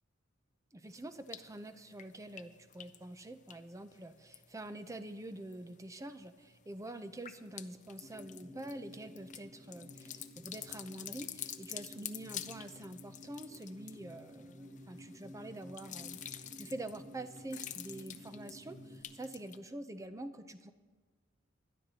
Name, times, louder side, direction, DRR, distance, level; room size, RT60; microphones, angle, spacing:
voice 1, 0.7-20.7, right 1 dB, 15° right, 9 dB, 0.6 m, -46 dB
sound 1, 0.9-1.6 1.9-4.9 5.2-5.8 6.2-19.6, left 11 dB, 40° left, 0.5 m, -48 dB
sound 2, 8.0-19.0, equal, 45° right, 2.0 m, -53 dB
26.5 x 12.0 x 2.9 m, 1.5 s
head